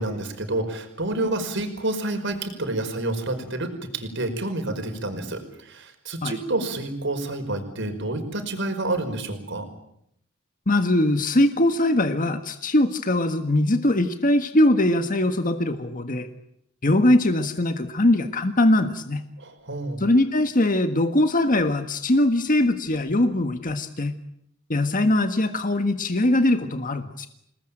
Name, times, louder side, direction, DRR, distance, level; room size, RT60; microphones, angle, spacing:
voice 1, 0.0-9.7 19.4-20.0, right 2 dB, 65° right, 6 dB, 5.4 m, -29 dB
voice 2, 10.7-16.3 16.8-19.2 20.0-24.1 24.7-27.3, left 1 dB, 40° left, 8 dB, 1.6 m, -21 dB
28.5 x 20.0 x 9.1 m, 0.75 s
head